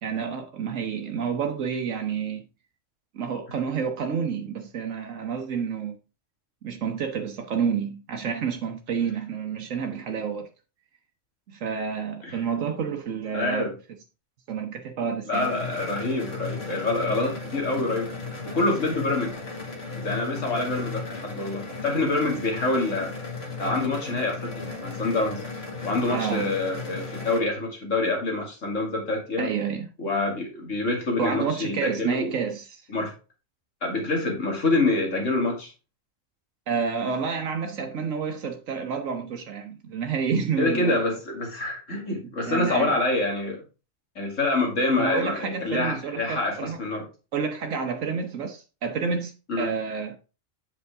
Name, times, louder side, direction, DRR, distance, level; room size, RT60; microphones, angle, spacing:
voice 1, 0.0-2.5 3.1-6.0 6.6-10.5 11.5-13.7 14.5-15.5 26.1-26.5 29.4-29.9 31.2-32.8 36.7-41.2 42.4-42.9 45.0-46.8 47.3-49.3 49.6-50.2, right 6 dB, 85° right, 1.3 m, -29 dB
voice 2, 13.3-13.7 15.3-18.1 18.4-19.3 20.0-23.1 23.6-25.4 25.8-29.5 30.0-32.3 32.9-33.1 33.8-35.7 40.6-43.6 44.2-47.0 49.5-49.7, left 2 dB, 75° left, 2.8 m, -26 dB
sound 1, 15.3-27.4, left 3 dB, 55° left, 2.1 m, -35 dB
8.0 x 5.8 x 3.5 m
omnidirectional pair, 1.3 m